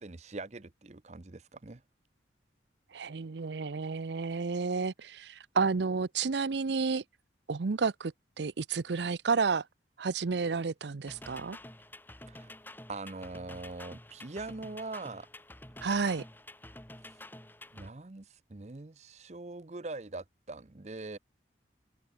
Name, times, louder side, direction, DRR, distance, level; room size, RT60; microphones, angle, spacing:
voice 1, 0.0-1.8 12.3-12.5 12.9-15.3 17.7-21.2, right 3 dB, 35° right, 0.7 m, -42 dB
voice 2, 2.9-7.0 7.5-8.1 8.4-9.6 10.0-11.6 15.8-16.2, right 4 dB, 70° right, 0.6 m, -31 dB
sound 1, 11.1-17.9, left 1 dB, 10° left, 5.8 m, -49 dB
open air
head